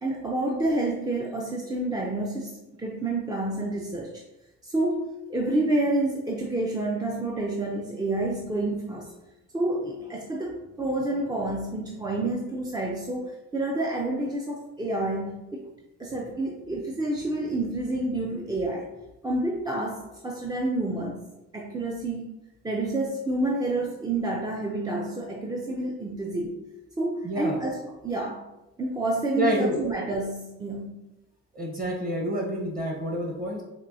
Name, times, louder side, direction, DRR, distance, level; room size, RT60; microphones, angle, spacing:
voice 1, 0.0-4.2 4.6-9.1 9.5-15.6 16.0-18.9 19.2-21.3 21.5-22.3 22.6-26.6 27.0-27.8 28.0-28.4 28.8-31.0, right 2 dB, 15° right, -1 dB, 0.4 m, -29 dB
voice 2, 27.2-27.6 29.3-29.8 31.5-33.6, equal, 30° right, -1 dB, 1.1 m, -28 dB
4.3 x 2.6 x 2.6 m, 0.96 s
cardioid pair, 90°, 30 cm